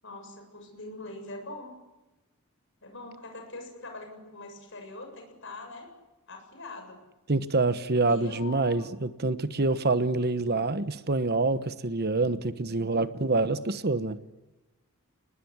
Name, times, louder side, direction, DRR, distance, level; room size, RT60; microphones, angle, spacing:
voice 1, 0.0-1.7 2.8-5.9 6.3-7.0 8.1-8.9, left 2 dB, 60° left, 4 dB, 7.4 m, -43 dB
voice 2, 7.3-14.2, right 3 dB, 45° right, 12 dB, 1.1 m, -26 dB
28.5 x 20.0 x 9.7 m, 1.1 s
head